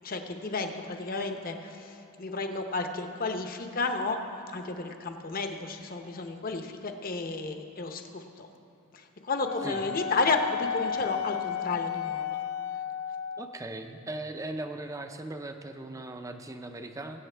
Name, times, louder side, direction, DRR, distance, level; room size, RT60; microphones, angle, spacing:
voice 1, 0.0-4.2 4.5-8.5 8.9-12.4, left 3 dB, 40° left, 5 dB, 0.8 m, -32 dB
Wind instrument woodwind instrument, 9.4-13.6, left 9 dB, 90° left, 0.4 m, -33 dB
voice 2, 13.4-17.2, right 2 dB, 15° right, 6 dB, 0.5 m, -38 dB
21.5 x 8.2 x 3.4 m, 2.6 s
head